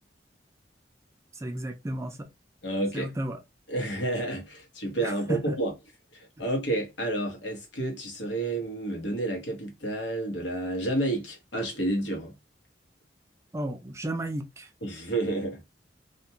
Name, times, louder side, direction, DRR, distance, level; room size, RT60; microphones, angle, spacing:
voice 1, 1.3-2.3 2.9-3.4 5.0-5.6 13.5-14.7, right 1 dB, 15° right, 0.3 m, -33 dB
voice 2, 2.6-3.2 3.7-5.7 6.1-12.3 14.8-15.6, right 2 dB, 85° left, 1.0 m, -30 dB
2.4 x 2.1 x 2.7 m
head